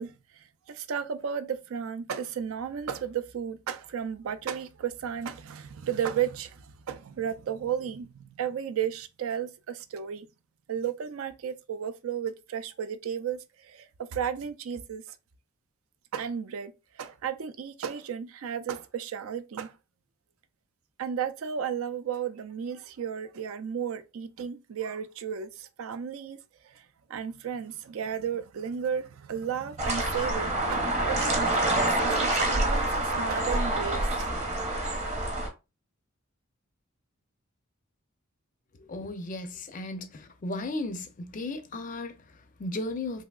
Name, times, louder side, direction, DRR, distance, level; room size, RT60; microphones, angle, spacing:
voice 1, 0.0-10.3 10.7-15.2 16.1-16.7 17.0-19.7 21.0-26.4 26.6-26.8 27.1-31.7 32.0-34.3, right 8 dB, 80° right, 0.4 m, -34 dB
sound 1, 29.8-35.5, right 1 dB, 30° right, 0.8 m, -27 dB
voice 2, 38.8-43.2, left 2 dB, 40° left, 0.4 m, -35 dB
3.4 x 2.7 x 2.3 m
head